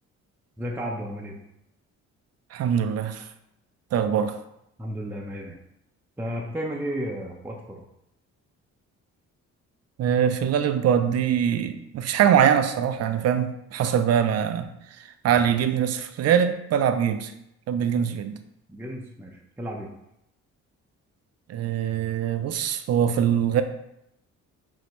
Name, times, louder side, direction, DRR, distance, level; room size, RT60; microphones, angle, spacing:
voice 1, 0.6-1.3 4.8-5.6 6.2-7.9 18.7-19.9, equal, 5° right, -1 dB, 0.6 m, -33 dB
voice 2, 2.5-3.2 3.9-4.4 10.0-14.7 15.2-17.3 17.7-18.4 21.5-23.6, right 8 dB, 55° right, 9 dB, 0.5 m, -23 dB
5.4 x 2.7 x 3.0 m, 0.82 s
cardioid pair, 90°, 30 cm